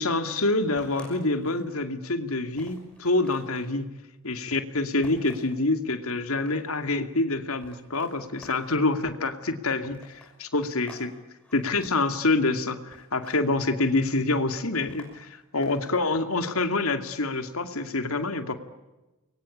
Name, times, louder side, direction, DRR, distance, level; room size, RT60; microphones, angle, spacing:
voice 1, 0.0-3.9 4.2-11.1 11.5-18.6, left 2 dB, 80° left, 8 dB, 2.5 m, -26 dB
sound 1, 0.7-1.7 2.1-2.2 2.5-3.7 5.0-5.6 6.2-6.8 7.6-8.9 9.9-11.1 11.3-11.9 12.9-13.4 13.7-14.2 14.9-16.1, equal, 5° left, 6.3 m, -52 dB
29.5 x 23.5 x 8.6 m, 1.1 s
head